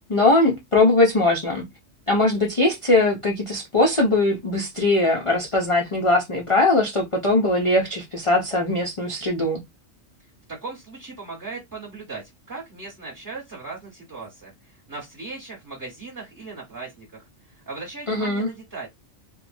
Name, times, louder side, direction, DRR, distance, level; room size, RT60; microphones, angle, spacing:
voice 1, 0.1-1.7 2.1-9.6 18.1-18.5, left 2 dB, 60° left, 0.3 m, -20 dB
voice 2, 10.5-18.9, right 3 dB, 20° right, 0.9 m, -38 dB
2.9 x 2.2 x 2.5 m
omnidirectional pair, 1.3 m